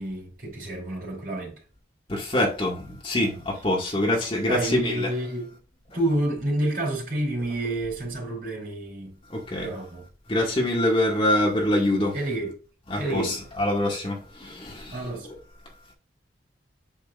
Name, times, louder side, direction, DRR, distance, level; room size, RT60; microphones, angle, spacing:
voice 1, 0.0-1.6 4.5-5.6 5.9-9.2 9.6-10.0 12.1-12.5 12.9-13.4 14.9-15.3, right 1 dB, 50° right, 4.2 m, -29 dB
voice 2, 2.1-5.1 9.3-9.7 10.3-12.2 12.9-15.0, left 1 dB, 30° left, 2.1 m, -25 dB
8.2 x 6.2 x 2.6 m
head